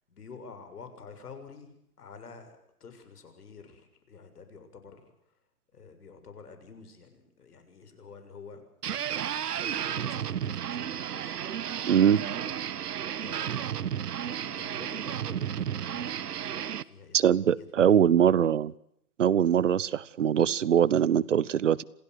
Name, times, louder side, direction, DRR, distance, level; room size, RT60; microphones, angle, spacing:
voice 1, 0.1-5.4 5.7-8.6 9.5-11.4 12.1-12.5 13.2-18.1, left 5 dB, 85° left, 9 dB, 7.1 m, -49 dB
sound 1, 8.8-16.8, right 9 dB, 90° right, 1.3 m, -33 dB
voice 2, 11.9-12.2 17.1-18.7 19.2-21.8, right 9 dB, 55° right, 20 dB, 1.0 m, -22 dB
27.5 x 16.5 x 8.0 m, 0.75 s
hypercardioid pair, 180°, 45 cm